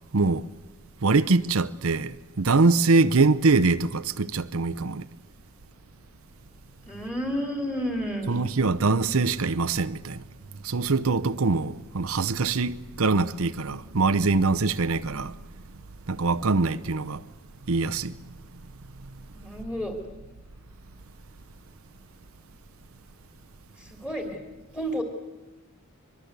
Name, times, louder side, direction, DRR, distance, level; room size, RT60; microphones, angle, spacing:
voice 1, 0.1-0.5 1.0-5.1 8.3-10.2 10.6-15.4 16.1-17.2 17.7-18.1, right 3 dB, 75° right, 0.8 m, -23 dB
voice 2, 6.9-8.3 19.3-20.0 23.8-24.4 24.7-25.0, equal, 10° left, 3.1 m, -31 dB
24.0 x 22.5 x 8.1 m
head